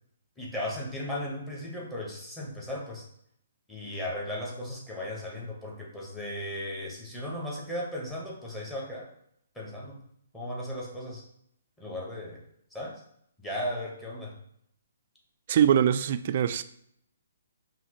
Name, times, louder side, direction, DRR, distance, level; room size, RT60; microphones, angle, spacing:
voice 1, 0.4-3.1 3.7-9.1 9.5-10.0 10.3-11.2 11.8-12.4 12.7-13.0 13.4-14.4, left 1 dB, 10° left, 1.4 m, -36 dB
voice 2, 15.5-16.6, right 9 dB, 50° right, 0.3 m, -23 dB
5.6 x 2.8 x 3.1 m
hypercardioid pair, 135°, 0 cm